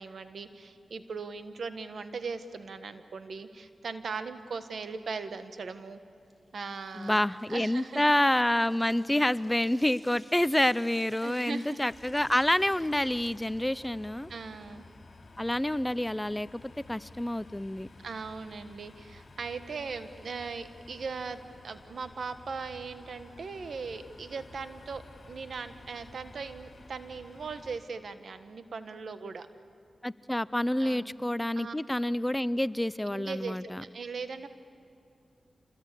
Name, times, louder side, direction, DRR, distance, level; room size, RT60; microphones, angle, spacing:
voice 1, 0.0-6.0 6.5-7.2 7.5-8.0 11.2-11.8 14.3-14.8 18.0-29.5 30.8-31.1 31.6-31.7 33.1-34.5, right 4 dB, 75° right, 10 dB, 1.4 m, -39 dB
sound 1, 6.2-14.6, equal, 15° right, 4.1 m, -60 dB
voice 2, 7.0-14.3 15.4-16.6 16.9-17.9 30.0-33.8, left 1 dB, 15° left, 17 dB, 0.6 m, -28 dB
sound 2, 11.9-27.8, left 3 dB, 55° left, 3.3 m, -53 dB
27.0 x 20.5 x 8.4 m, 2.7 s
cardioid pair, 45°, 0 cm